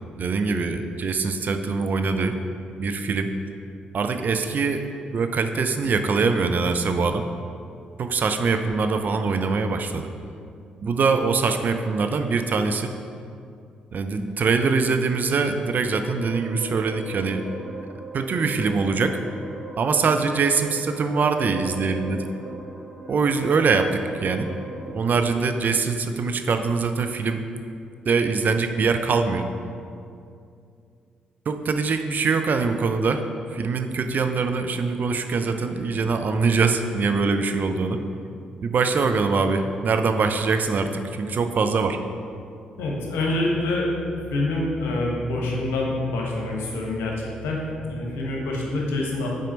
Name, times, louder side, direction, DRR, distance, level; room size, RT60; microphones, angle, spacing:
voice 1, 0.2-2.4 2.8-3.3 3.9-4.8 5.1-7.2 8.0-10.1 10.8-12.9 13.9-17.4 18.1-19.2 19.8-22.2 23.1-24.5 24.9-27.5 28.1-29.5 31.5-33.2 33.5-38.0 38.6-42.0, right 4 dB, 50° right, 7 dB, 0.5 m, -23 dB
sound 1, 15.5-24.8, right 2 dB, 80° right, 1.6 m, -38 dB
voice 2, 42.8-43.9 44.3-49.3, left 2 dB, 70° left, -2 dB, 1.1 m, -26 dB
6.0 x 4.3 x 5.2 m, 2.5 s
hypercardioid pair, 40°, 4 cm